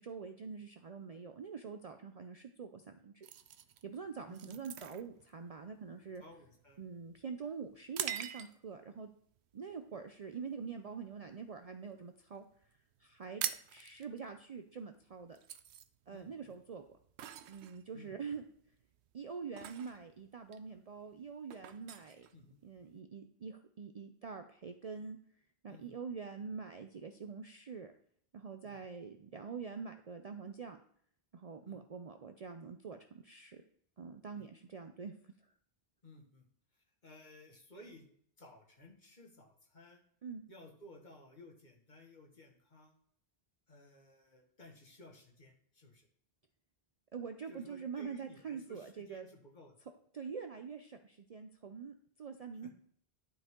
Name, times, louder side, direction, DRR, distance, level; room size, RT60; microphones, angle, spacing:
voice 1, 0.0-3.3 3.8-6.2 6.8-9.1 9.5-12.4 13.0-13.4 13.7-15.4 16.1-16.8 17.5-18.4 19.1-22.3 22.6-25.2 25.6-27.9 28.3-30.8 31.3-33.6 34.0-35.3 40.2-40.4 47.1-49.3 50.1-52.7, right 5 dB, 50° right, 6 dB, 0.5 m, -45 dB
sound 1, 3.2-8.8 9.4-9.6 10.1-10.4 10.8-11.9 12.2-12.3 12.5-12.7 13.0-23.0, right 10 dB, 85° right, 0.9 m, -45 dB
voice 2, 6.2-6.8 16.1-16.5 17.9-18.2 22.3-22.6 25.7-26.0 28.6-28.8 31.6-31.8 34.3-34.5 36.0-36.5 36.7-38.1 38.4-40.0 40.5-43.0 43.7-46.1 47.5-49.8, left 1 dB, 45° left, 1 dB, 1.8 m, -57 dB
11.5 x 5.0 x 3.7 m, 0.63 s
omnidirectional pair, 1.1 m